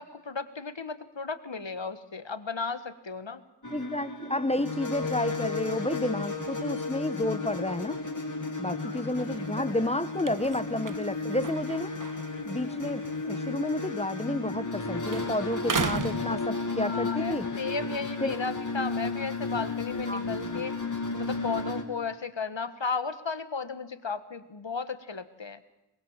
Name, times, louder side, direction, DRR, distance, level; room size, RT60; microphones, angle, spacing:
voice 1, 0.0-3.4 8.8-9.9 12.6-12.8 16.8-25.6, left 4 dB, 65° left, 11 dB, 1.6 m, -35 dB
sound 1, 3.6-21.8, left 3 dB, 40° left, 2.7 m, -33 dB
voice 2, 3.7-8.0 8.6-11.9 12.5-17.5 18.2-18.4 20.1-20.6, left 1 dB, 15° left, 14 dB, 1.0 m, -31 dB
sound 2, 9.2-14.8 15.1-17.1 17.6-20.7, right 5 dB, 40° right, 0.8 m, -39 dB
22.5 x 21.5 x 7.4 m, 0.92 s
wide cardioid pair, 55°, 49 cm